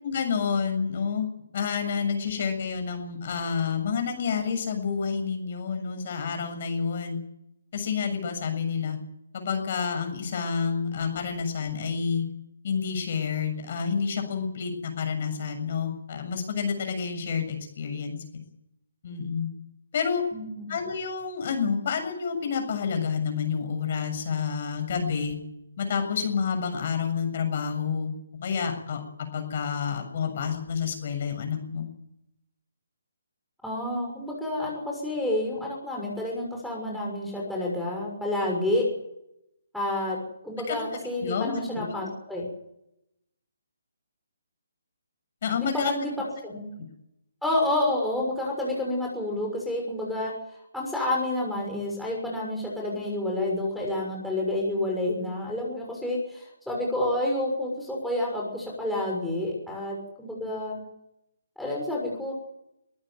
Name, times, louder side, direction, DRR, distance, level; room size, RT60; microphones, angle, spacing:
voice 1, 0.0-1.3 1.5-7.2 7.7-9.0 9.3-12.2 12.6-18.2 19.0-19.5 19.9-20.2 20.7-25.4 25.8-28.1 28.4-29.0 29.3-31.9 40.7-40.8 41.2-42.0 45.4-45.9 46.8-46.9, left 6 dB, 45° left, 6 dB, 7.1 m, -29 dB
voice 2, 20.3-20.8 33.6-38.9 39.7-40.2 40.4-42.5 45.6-46.7 47.4-50.3 50.7-60.8 61.6-62.3, left 1 dB, ahead, -3 dB, 6.4 m, -29 dB
24.0 x 14.5 x 9.3 m, 0.82 s
hypercardioid pair, 155°, 0 cm